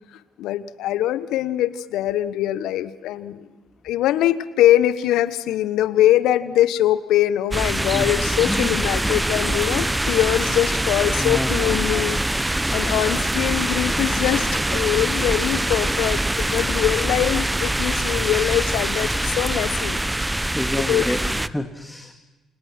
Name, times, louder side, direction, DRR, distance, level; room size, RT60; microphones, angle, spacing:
voice 1, 0.4-3.5 3.8-20.0 20.8-21.1, left 13 dB, 70° left, 15 dB, 1.1 m, -22 dB
sound 1, 7.5-21.5, right 1 dB, 10° right, 0.9 m, -23 dB
voice 2, 7.9-8.7 11.2-11.7 20.5-22.1, left 1 dB, 5° left, 5 dB, 2.4 m, -29 dB
28.5 x 28.0 x 6.1 m, 1.1 s
hypercardioid pair, 50°, 0 cm